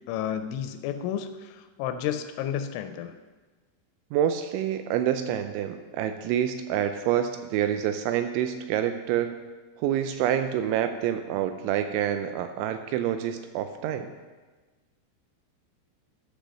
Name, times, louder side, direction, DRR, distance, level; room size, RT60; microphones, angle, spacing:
voice 1, 0.1-1.5 1.8-3.1, left 9 dB, 85° left, 9 dB, 2.8 m, -31 dB
voice 2, 4.1-9.4 9.8-14.1, right 10 dB, 85° right, 8 dB, 2.7 m, -27 dB
11.5 x 5.2 x 6.3 m, 1.3 s
omnidirectional pair, 5.6 m